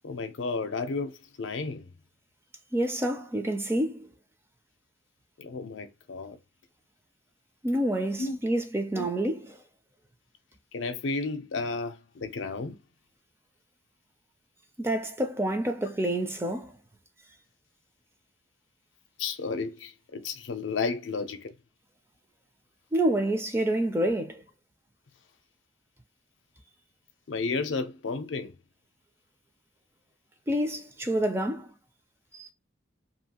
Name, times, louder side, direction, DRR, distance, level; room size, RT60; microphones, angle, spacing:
voice 1, 0.0-1.9 5.4-6.4 8.2-8.4 8.9-9.1 10.7-12.8 19.2-21.5 27.3-28.5, left 4 dB, 85° left, 0.5 m, -32 dB
voice 2, 2.7-4.1 7.6-9.5 14.8-16.7 22.9-24.4 30.5-31.7 32.3-32.5, right 1 dB, 15° right, 0.4 m, -28 dB
2.7 x 2.4 x 2.8 m
head